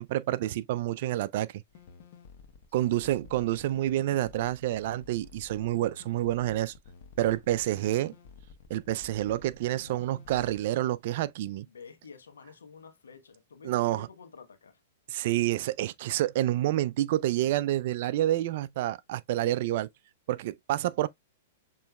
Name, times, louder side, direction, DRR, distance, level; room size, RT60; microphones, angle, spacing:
voice 1, 0.0-1.5 2.7-6.7 7.2-8.1 8.7-11.7 13.6-14.1 15.1-19.9 20.3-21.1, right 14 dB, 55° right, 0.3 m, -28 dB
sound 1, 1.7-10.6, left 5 dB, 55° left, 1.0 m, -52 dB
voice 2, 2.7-3.1 11.7-14.8, left 5 dB, 85° left, 1.0 m, -50 dB
6.8 x 3.1 x 2.2 m
hypercardioid pair, 120°, 0 cm